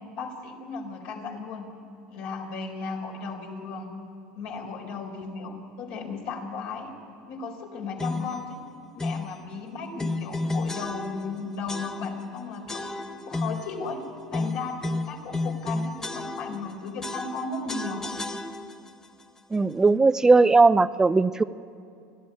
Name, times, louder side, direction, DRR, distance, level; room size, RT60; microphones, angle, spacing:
voice 1, 0.1-1.7 2.1-3.9 4.4-6.9 7.3-8.6 8.9-12.9 13.2-14.0 14.3-18.1, left 4 dB, 65° left, 2 dB, 4.5 m, -35 dB
sound 1, 8.0-8.4 9.0-9.3 10.0-11.4 11.7-12.3 12.7-13.7 14.3-16.7 17.0-18.9, left 2 dB, 15° left, 1.1 m, -32 dB
voice 2, 19.5-21.4, right 3 dB, 15° right, 14 dB, 0.5 m, -18 dB
23.5 x 15.5 x 9.7 m, 2.4 s
supercardioid pair, 100°, 4 cm